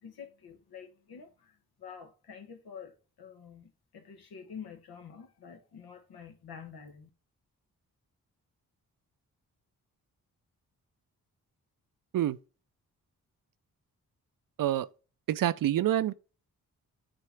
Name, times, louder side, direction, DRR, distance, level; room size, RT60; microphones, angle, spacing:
voice 1, 0.0-7.1, left 7 dB, 80° left, 1.2 m, -48 dB
voice 2, 15.3-16.1, right 12 dB, 60° right, 0.5 m, -27 dB
7.6 x 2.8 x 4.6 m
supercardioid pair, 50°, 37 cm